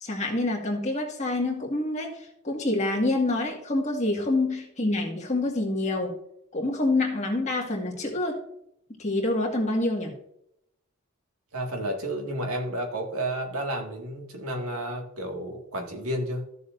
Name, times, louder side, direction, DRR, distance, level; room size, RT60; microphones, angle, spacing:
voice 1, 0.0-6.2 6.5-8.4 9.0-10.1, left 2 dB, 30° left, 0 dB, 1.8 m, -27 dB
voice 2, 11.5-16.5, right 1 dB, 90° right, 2 dB, 1.9 m, -31 dB
14.0 x 7.0 x 2.6 m, 0.74 s
head